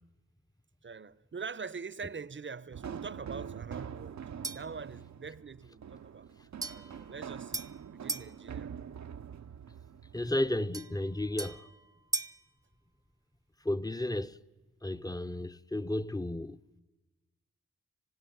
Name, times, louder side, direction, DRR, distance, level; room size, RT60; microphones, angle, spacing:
voice 1, 0.8-4.2 4.5-6.3 6.6-7.7 7.9-8.7, right 5 dB, 40° right, 0.9 m, -43 dB
sound 1, 2.7-10.5, right 8 dB, 60° right, 0.8 m, -44 dB
sound 2, 4.4-4.8 6.6-8.3 10.7-12.5, right 2 dB, 10° right, 0.9 m, -39 dB
voice 2, 10.1-11.7 13.6-14.4 14.8-16.6, left 1 dB, 10° left, 1.0 m, -33 dB
26.5 x 16.0 x 9.6 m
cardioid pair, 50°, 31 cm